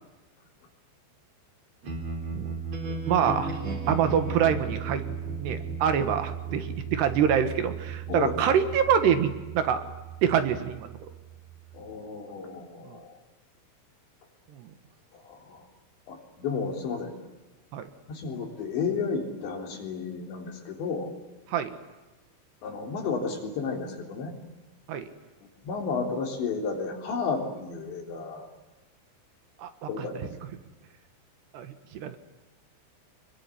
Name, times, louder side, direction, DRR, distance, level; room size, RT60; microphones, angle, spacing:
sound 1, 1.8-11.9, right 4 dB, 40° right, 4.4 m, -35 dB
voice 1, 2.8-3.5 3.9-5.0 5.4-9.8 10.2-11.1 12.9-13.0 14.5-14.7 17.7-17.9 21.5-21.8 24.9-25.1 29.6-29.7 30.0-30.1 31.5-32.2, right 8 dB, 70° right, 9 dB, 3.5 m, -26 dB
voice 2, 11.7-13.2 15.1-15.7 16.1-17.2 18.1-21.1 22.6-24.4 25.4-28.5 29.9-30.3, left 5 dB, 70° left, 2 dB, 5.8 m, -32 dB
26.0 x 22.5 x 9.8 m, 1.1 s
omnidirectional pair, 5.3 m